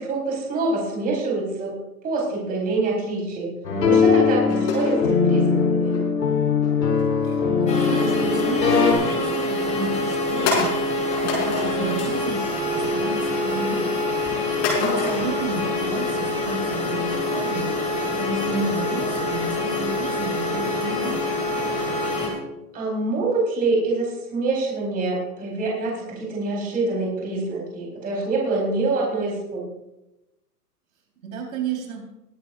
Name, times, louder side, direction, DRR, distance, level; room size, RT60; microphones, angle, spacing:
voice 1, 0.0-1.8 2.0-3.5 3.9-5.9 11.7-12.1 22.7-29.7, right 3 dB, 15° right, -3 dB, 4.4 m, -25 dB
sound 1, 3.6-8.9, left 6 dB, 80° left, 3.9 m, -20 dB
sound 2, 4.5-6.0 6.6-7.9 8.3-8.6 9.1-9.2 9.7-9.8 10.5-11.9 12.3-12.7 12.9-13.6 14.6-15.4, left 4 dB, 35° left, 5.3 m, -28 dB
voice 2, 7.2-12.4 12.7-21.2 31.2-32.0, right 3 dB, 55° right, 0 dB, 4.5 m, -32 dB
sound 3, 7.7-22.3, left 2 dB, 15° left, 3.4 m, -25 dB
22.0 x 11.0 x 2.6 m, 0.94 s
hypercardioid pair, 145°, 49 cm